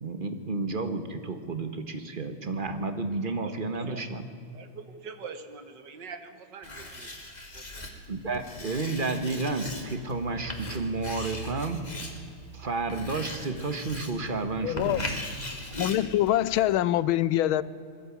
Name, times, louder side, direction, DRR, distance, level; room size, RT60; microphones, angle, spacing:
voice 1, 0.0-4.3 8.1-11.8 12.5-15.2, right 3 dB, 30° right, 1.3 m, -31 dB
voice 2, 3.2-3.5 3.9-4.0 4.5-7.1 7.5-8.0, right 5 dB, 60° right, 2.0 m, -44 dB
Writing, 6.6-16.8, left 1 dB, 20° left, 2.1 m, -40 dB
voice 3, 14.6-15.1 15.8-17.6, left 13 dB, 85° left, 1.5 m, -24 dB
20.5 x 14.0 x 9.8 m
omnidirectional pair, 2.2 m